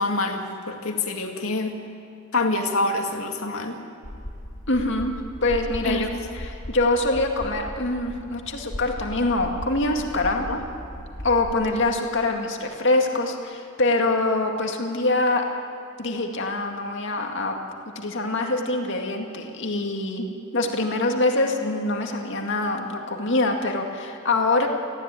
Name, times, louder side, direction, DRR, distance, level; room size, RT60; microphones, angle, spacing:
voice 1, 0.0-1.7 2.3-3.8 5.8-6.3 10.5-10.6, left 2 dB, 75° left, 3 dB, 2.3 m, -26 dB
sound 1, 4.0-11.5, left 1 dB, 40° left, 1.4 m, -37 dB
voice 2, 4.7-5.1 5.4-6.1 6.3-10.5 11.2-15.5 16.0-17.6 18.0-20.3 20.5-24.7, left 2 dB, 55° left, 3 dB, 2.1 m, -24 dB
19.0 x 15.5 x 9.2 m, 2.8 s
head